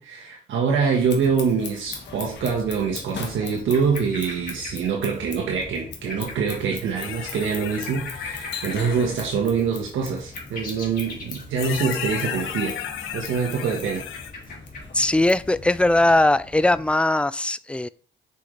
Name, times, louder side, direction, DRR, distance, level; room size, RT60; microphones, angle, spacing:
voice 1, 0.0-12.8 13.1-14.0, right 6 dB, 75° right, 1.6 m, -25 dB
Scissors, 0.9-16.2, left 6 dB, 60° left, 1.6 m, -42 dB
sound 1, 1.8-16.9, left 2 dB, 45° left, 3.2 m, -42 dB
sound 2, 6.9-9.3 10.7-10.8 11.6-14.3, left 9 dB, 80° left, 0.8 m, -34 dB
voice 2, 14.9-17.9, left 1 dB, 5° left, 0.3 m, -20 dB
6.3 x 5.7 x 3.3 m
cardioid pair, 90°, 20 cm